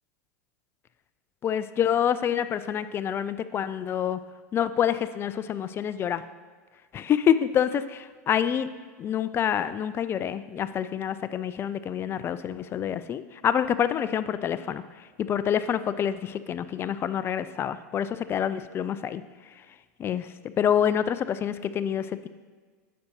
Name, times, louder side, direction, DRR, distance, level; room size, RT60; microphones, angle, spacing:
voice 1, 1.4-4.2 4.5-6.2 6.9-8.7 9.0-14.8 15.2-19.2 20.0-20.3 20.6-22.3, left 9 dB, 25° left, 14 dB, 0.3 m, -27 dB
9.4 x 6.4 x 2.8 m, 1.5 s
hypercardioid pair, 100°, 9 cm